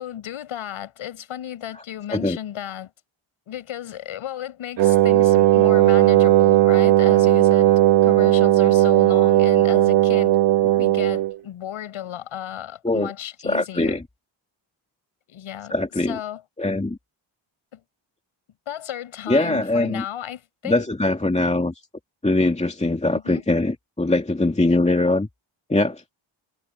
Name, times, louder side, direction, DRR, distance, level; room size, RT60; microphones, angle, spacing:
voice 1, 0.0-2.9 3.5-7.7 8.0-10.4 10.8-14.0 15.3-15.8 16.1-16.4 17.7-17.8 18.7-20.8 23.2-23.5, left 11 dB, 80° left, 7.7 m, -34 dB
Wind instrument woodwind instrument, 4.8-11.4, right 14 dB, 60° right, 0.6 m, -16 dB
voice 2, 13.4-14.0 15.7-16.2 16.6-17.0 19.3-20.0 20.6-21.7 22.2-25.3 25.7-26.0, left 2 dB, 15° left, 2.3 m, -22 dB
cardioid pair, 65°, 48 cm